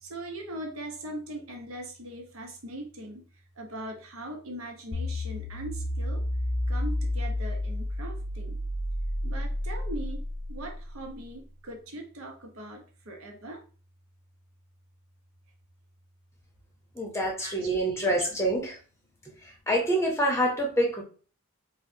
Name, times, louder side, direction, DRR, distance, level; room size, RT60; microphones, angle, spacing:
voice 1, 0.0-3.2 3.6-6.2 6.7-8.6 9.2-10.2 10.5-13.6 17.4-18.5, right 1 dB, 70° right, 2 dB, 0.8 m, -40 dB
sound 1, 4.9-11.2, left 1 dB, 30° left, 0.4 m, -31 dB
voice 2, 17.0-18.8 19.7-21.0, right 1 dB, 10° left, 0 dB, 0.8 m, -26 dB
4.7 x 2.2 x 2.7 m, 0.38 s
head